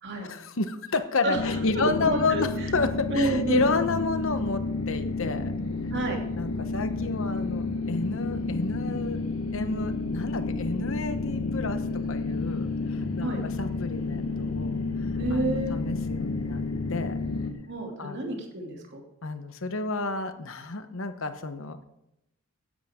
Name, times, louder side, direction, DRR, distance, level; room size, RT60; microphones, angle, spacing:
voice 1, 0.2-5.5 6.4-9.2 9.5-11.8 12.1-13.3 13.6-14.8 15.3-16.6 16.9-17.2 18.0-18.2 19.2-21.8, left 3 dB, 65° left, 9 dB, 1.1 m, -30 dB
sound 1, 1.3-17.5, left 3 dB, 85° left, 1.5 m, -30 dB
voice 2, 1.7-2.7 3.1-3.7 5.9-6.2 13.2-13.4 15.2-15.8 17.7-19.0, right 1 dB, 55° right, 1 dB, 2.8 m, -29 dB
16.0 x 10.5 x 3.7 m, 0.86 s
head